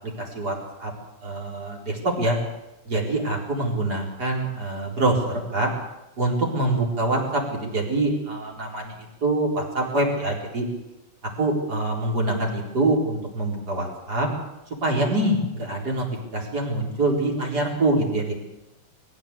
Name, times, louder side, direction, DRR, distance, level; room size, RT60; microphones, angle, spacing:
voice 1, 0.2-0.5 0.8-0.9 1.2-2.4 2.9-5.7 6.2-10.7 11.4-14.3 14.8-16.1 16.3-18.3, right 2 dB, 30° right, 0 dB, 4.6 m, -25 dB
22.0 x 15.5 x 8.3 m, 0.96 s
omnidirectional pair, 3.7 m